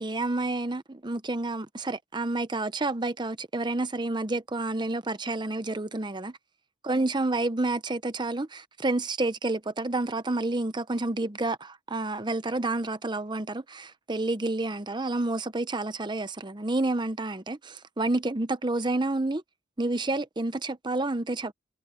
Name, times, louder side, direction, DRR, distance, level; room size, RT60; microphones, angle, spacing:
voice 1, 0.0-6.4 6.8-19.4 19.8-21.5, right 2 dB, 25° right, 0.7 m, -29 dB
head